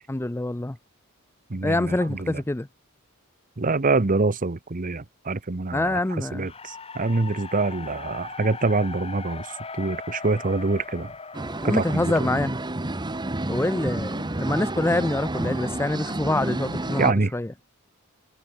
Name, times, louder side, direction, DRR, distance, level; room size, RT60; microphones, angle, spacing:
voice 1, 0.1-0.8 1.6-2.7 5.7-6.5 11.6-12.5 13.5-17.5, left 2 dB, 10° left, 0.5 m, -25 dB
voice 2, 1.5-2.4 3.6-11.1 11.6-12.1 17.0-17.3, right 3 dB, 40° right, 0.9 m, -25 dB
sound 1, 6.4-12.6, left 4 dB, 25° left, 3.0 m, -39 dB
sound 2, 11.3-17.1, right 1 dB, 20° right, 1.1 m, -30 dB
head